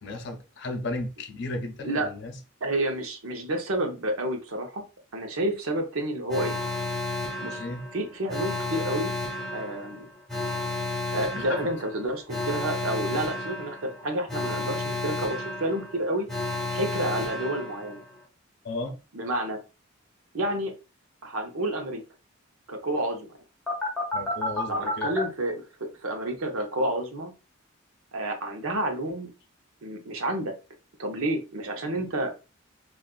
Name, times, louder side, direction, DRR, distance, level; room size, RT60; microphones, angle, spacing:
voice 1, 0.0-2.4 7.6-7.8 11.4-11.7 18.6-19.0 24.1-25.1, left 2 dB, 55° left, 0.5 m, -34 dB
voice 2, 1.8-2.1 2.6-4.8 5.1-6.6 7.4-7.7 7.9-9.1 9.5-10.0 11.1-16.3 16.7-18.0 19.1-19.6 20.3-20.7 21.2-22.0 22.7-23.3 24.7-27.3 28.1-29.3 29.8-30.5 31.0-32.3, right 1 dB, 80° right, 0.8 m, -30 dB
Alarm, 6.3-18.2 23.7-25.2, left 2 dB, ahead, 0.8 m, -32 dB
3.7 x 2.5 x 2.3 m
head